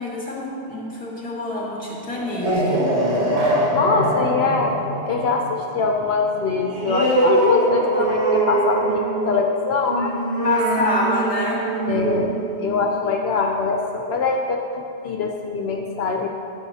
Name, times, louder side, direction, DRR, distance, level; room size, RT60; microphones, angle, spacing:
voice 1, 0.0-2.8 10.4-11.6 13.3-13.4, left 2 dB, 30° left, -5 dB, 1.7 m, -26 dB
sound 1, 2.1-13.4, right 2 dB, 80° right, 1.7 m, -23 dB
voice 2, 3.7-4.8 5.1-10.1 11.9-16.3, left 4 dB, 70° left, 1 dB, 0.8 m, -23 dB
10.0 x 7.1 x 2.7 m, 2.6 s
omnidirectional pair, 1.1 m